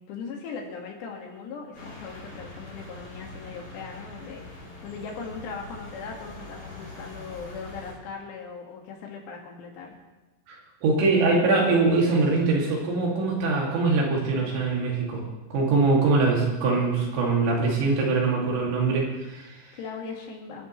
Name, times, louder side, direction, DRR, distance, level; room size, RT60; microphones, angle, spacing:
voice 1, 0.0-9.9 19.7-20.7, left 5 dB, 75° left, 0 dB, 4.1 m, -39 dB
sound 1, 1.7-7.9, left 2 dB, 25° left, 4.0 m, -43 dB
voice 2, 10.5-15.2 15.5-19.7, right 3 dB, 85° right, -2 dB, 5.0 m, -23 dB
27.0 x 11.0 x 3.3 m, 1.1 s
omnidirectional pair, 5.0 m